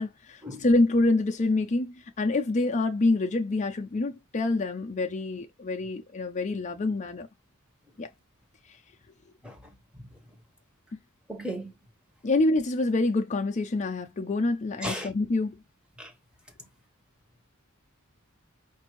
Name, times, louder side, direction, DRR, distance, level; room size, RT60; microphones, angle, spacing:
voice 1, 0.0-7.3 8.0-8.1 8.7-8.8 12.2-15.6, left 2 dB, 35° left, 0.5 m, -26 dB
voice 2, 11.3-11.7 14.8-15.1 16.0-16.1, equal, 5° right, 0.9 m, -35 dB
5.3 x 2.6 x 3.0 m
head